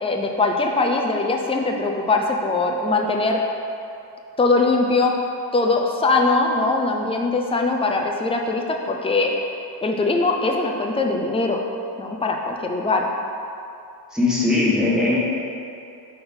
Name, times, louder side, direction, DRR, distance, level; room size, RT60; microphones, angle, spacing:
voice 1, 0.0-3.4 4.4-5.1 5.5-9.3 9.8-11.6 12.0-13.1, left 3 dB, 15° left, 2 dB, 0.5 m, -21 dB
voice 2, 14.1-15.2, left 2 dB, ahead, -7 dB, 1.3 m, -19 dB
6.0 x 3.9 x 5.3 m, 2.7 s
wide cardioid pair, 120°, 42 cm